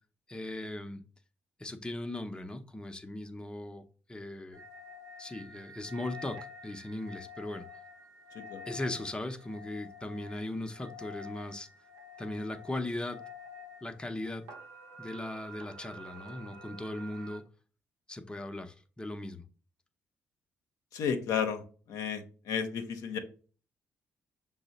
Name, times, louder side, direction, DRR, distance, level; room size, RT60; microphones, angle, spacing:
voice 1, 0.3-1.0 1.6-3.8 4.1-4.6 5.2-6.4 6.6-7.7 8.7-11.7 12.2-13.2 13.8-14.4 15.0-17.4 18.1-19.4, left 1 dB, 15° left, 0.6 m, -38 dB
sound 1, 4.5-17.4, left 2 dB, 85° right, 0.7 m, -49 dB
voice 2, 20.9-21.6 21.9-23.2, left 7 dB, 75° left, 0.6 m, -32 dB
6.1 x 2.0 x 4.0 m
hypercardioid pair, 50°, 6 cm